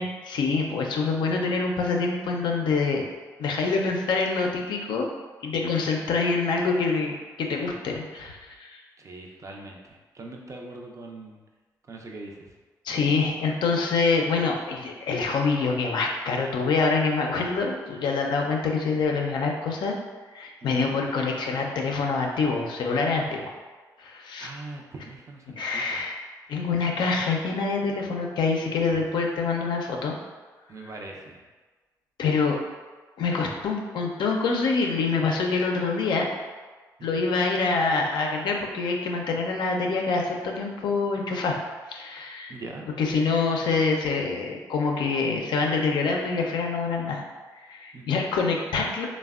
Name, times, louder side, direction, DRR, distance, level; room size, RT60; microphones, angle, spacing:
voice 1, 0.0-3.1 3.4-5.1 5.4-8.8 12.8-19.9 20.3-23.5 24.0-24.5 25.6-26.2 26.5-30.2 32.2-32.6 33.2-36.3 37.0-41.6 41.9-42.5 43.0-47.2 47.6-49.1, left 4 dB, 70° left, 1 dB, 0.4 m, -26 dB
voice 2, 9.0-11.4 11.9-12.5 20.6-21.0 24.4-26.0 30.7-31.4 37.0-37.3 42.5-42.9 47.9-48.2, right 2 dB, 40° right, 0 dB, 0.5 m, -41 dB
3.2 x 2.1 x 2.3 m, 1.3 s
supercardioid pair, 55°, 8 cm